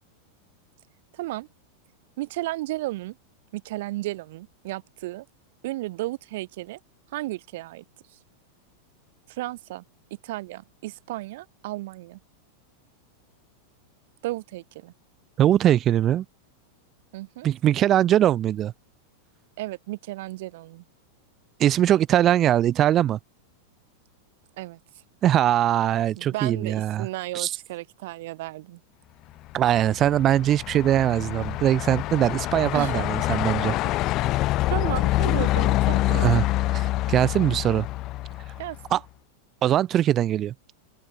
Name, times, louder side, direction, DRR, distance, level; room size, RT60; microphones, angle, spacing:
voice 1, 1.1-1.5 2.2-3.1 3.5-5.2 5.6-6.8 7.1-7.8 9.3-9.8 10.2-12.2 14.2-14.9 17.1-17.5 19.6-20.8 24.6-24.8 26.2-28.8 32.7-33.0 33.8-34.4 34.7-36.3 38.6-39.0, right 18 dB, 50° right, 3.3 m, -34 dB
voice 2, 15.4-16.2 17.4-18.7 21.6-23.2 25.2-27.1 27.3-27.5 29.5-33.8 36.1-36.5 36.7-37.9 38.9-39.0 39.6-40.5, right 11 dB, 30° right, 3.1 m, -21 dB
Truck, 29.5-38.9, left 17 dB, 35° left, 0.9 m, -26 dB
open air
figure-of-eight pair, 90°, 0 cm